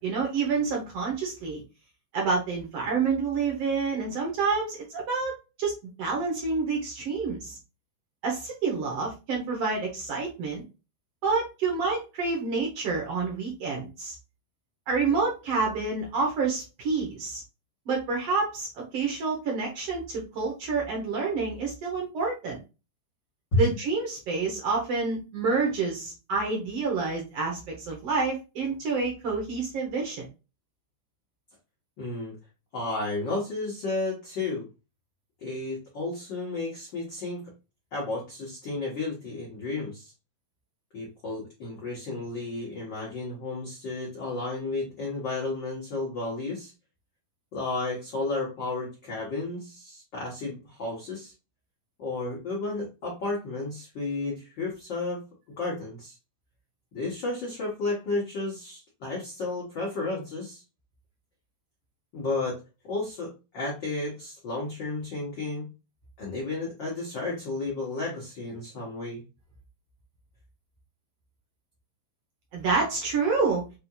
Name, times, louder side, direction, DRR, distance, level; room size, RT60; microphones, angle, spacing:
voice 1, 0.0-1.6 2.1-7.6 8.2-10.6 11.2-14.1 14.9-17.4 17.9-22.6 23.5-30.2 72.5-73.6, right 4 dB, 70° right, 0 dB, 1.4 m, -28 dB
voice 2, 32.0-32.3 32.7-34.6 35.4-37.4 37.9-40.1 40.9-46.7 47.5-51.3 52.0-55.2 55.6-56.1 56.9-60.6 62.1-65.7 66.2-69.2, left 2 dB, 90° left, -4 dB, 1.0 m, -32 dB
5.9 x 2.8 x 2.3 m, 0.29 s
omnidirectional pair, 4.0 m